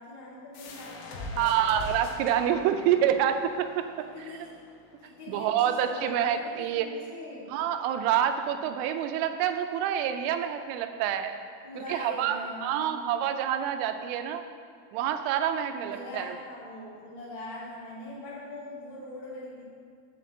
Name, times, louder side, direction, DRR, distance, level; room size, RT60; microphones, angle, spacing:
voice 1, 0.0-1.8 4.0-4.5 5.0-7.6 11.6-13.1 15.8-19.6, left 1 dB, 30° left, -10 dB, 1.0 m, -42 dB
sound 1, 0.5-5.9, left 3 dB, 75° left, 2.3 m, -43 dB
voice 2, 1.4-4.1 5.3-6.9 7.5-11.4 11.9-14.4 14.9-16.4, right 9 dB, 90° right, 8 dB, 3.1 m, -27 dB
6.4 x 5.8 x 7.2 m, 2.1 s
omnidirectional pair, 5.6 m